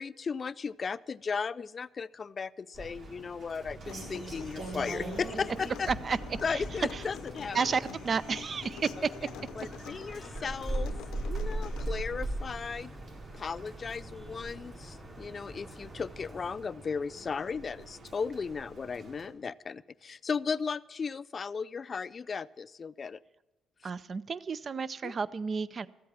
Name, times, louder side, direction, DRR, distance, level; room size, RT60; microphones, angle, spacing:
voice 1, 0.0-5.9 6.4-7.6 9.6-10.9 11.2-12.9 13.3-23.2 25.0-25.1, left 5 dB, 40° left, 18 dB, 0.4 m, -36 dB
Rain, 2.7-19.3, right 2 dB, 60° right, 4.1 m, -47 dB
sound 1, 3.8-16.5, right 2 dB, 20° right, 3.8 m, -40 dB
Human voice / Acoustic guitar, 3.9-11.9, left 10 dB, 85° left, 0.6 m, -47 dB
voice 2, 5.9-6.2 6.5-6.6 6.9-7.0 7.5-9.1 23.8-25.9, right 5 dB, 45° right, 17 dB, 0.5 m, -31 dB
14.0 x 8.4 x 7.4 m, 1.1 s
cardioid pair, 90°, 0 cm